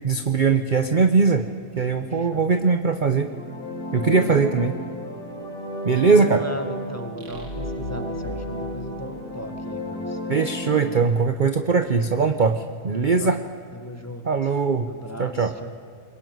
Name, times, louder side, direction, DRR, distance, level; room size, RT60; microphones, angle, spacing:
voice 1, 0.0-1.5 1.8-3.3 3.9-4.7 5.8-6.4 10.3-13.4 14.3-14.9 15.2-15.5, right 4 dB, 40° right, 8 dB, 0.9 m, -20 dB
voice 2, 2.0-2.5 4.2-4.6 6.0-10.3 12.9-13.3 13.7-14.6 14.9-15.7, left 1 dB, 10° left, 6 dB, 1.6 m, -37 dB
sound 1, 3.1-11.0, equal, 50° left, 4.2 m, -33 dB
sound 2, 7.2-9.8, left 2 dB, 70° right, 3.2 m, -38 dB
22.5 x 21.0 x 9.4 m, 2.2 s
omnidirectional pair, 1.7 m